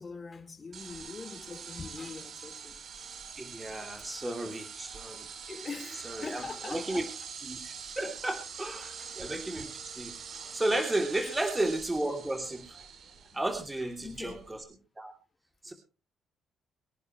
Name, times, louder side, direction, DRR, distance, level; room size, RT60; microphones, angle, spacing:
voice 1, 0.0-2.7 4.4-4.5 5.5-7.1 8.8-9.1 11.2-11.4 13.3-13.4 14.0-14.5, left 4 dB, 35° left, 4.2 m, -43 dB
sound 1, 0.7-14.6, right 6 dB, 60° right, 3.0 m, -44 dB
voice 2, 3.4-5.3 6.1-7.0 7.5-9.7 10.0-10.1 10.5-12.8 13.3-14.6 15.0-15.1 15.6-15.7, right 1 dB, 15° right, 3.0 m, -33 dB
24.0 x 10.5 x 3.2 m
cardioid pair, 90°, 0 cm